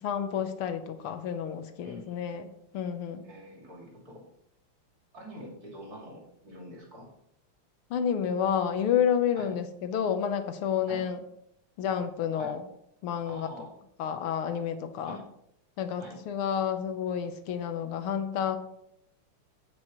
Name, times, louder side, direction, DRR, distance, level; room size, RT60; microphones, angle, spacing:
voice 1, 0.0-3.2 7.9-11.2 11.8-12.7 13.0-13.5 14.0-15.2 15.8-18.6, left 8 dB, 90° left, 8 dB, 1.8 m, -30 dB
voice 2, 1.8-2.2 3.2-4.2 5.1-7.1 9.4-9.5 10.9-11.0 12.4-12.6 13.3-13.7 15.0-15.2 16.0-16.2, equal, 45° right, -2 dB, 3.1 m, -45 dB
16.5 x 6.3 x 3.1 m, 0.76 s
omnidirectional pair, 2.3 m